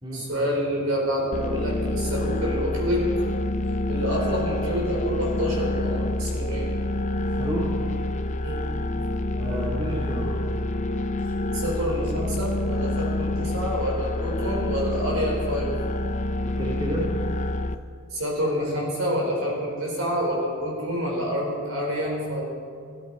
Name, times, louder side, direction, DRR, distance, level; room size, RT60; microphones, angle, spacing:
voice 1, 0.1-3.1 3.9-6.7 8.4-8.7 11.5-15.7 18.1-22.4, equal, 70° right, -3 dB, 4.6 m, -27 dB
sound 1, 1.3-17.7, left 1 dB, 35° left, 0.5 m, -27 dB
voice 2, 7.3-7.7 9.3-10.4 16.4-17.1, equal, 20° right, -5 dB, 2.5 m, -31 dB
17.0 x 13.0 x 4.9 m, 2.3 s
head